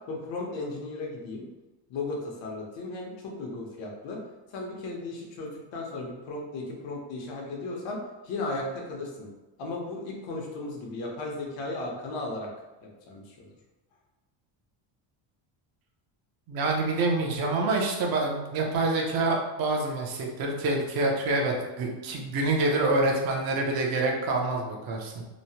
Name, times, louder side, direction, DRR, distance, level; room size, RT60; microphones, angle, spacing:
voice 1, 0.1-1.5 1.9-4.2 4.5-8.0 8.2-9.3 9.6-12.5 12.8-13.5, left 2 dB, 65° left, -1 dB, 0.9 m, -35 dB
voice 2, 16.5-25.2, right 2 dB, 45° right, 0 dB, 0.6 m, -26 dB
3.0 x 2.0 x 2.8 m, 1.1 s
cardioid pair, 150°, 49 cm